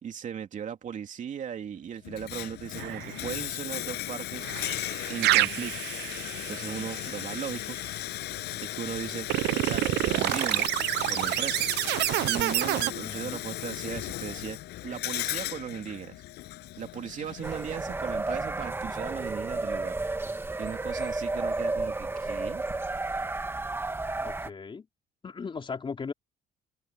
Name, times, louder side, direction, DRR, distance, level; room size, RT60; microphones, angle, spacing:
voice 1, 0.0-4.5 5.1-5.9 6.5-7.8 8.7-9.3 9.7-10.8 11.1-11.7 12.3-14.6 14.8-16.2 16.8-20.0 20.3-22.6, right 8 dB, 50° right, 3.0 m, -37 dB
Bathtub (filling or washing), 2.0-18.0, left 16 dB, 80° left, 7.0 m, -37 dB
sound 1, 2.8-3.4 4.4-7.6 9.3-12.9, right 17 dB, 80° right, 0.7 m, -28 dB
voice 2, 13.0-13.4 24.2-24.9 25.2-26.1, left 5 dB, 30° left, 4.0 m, -37 dB
sound 2, 17.4-24.5, right 2 dB, 15° right, 1.6 m, -32 dB
open air
cardioid pair, 110°, 17 cm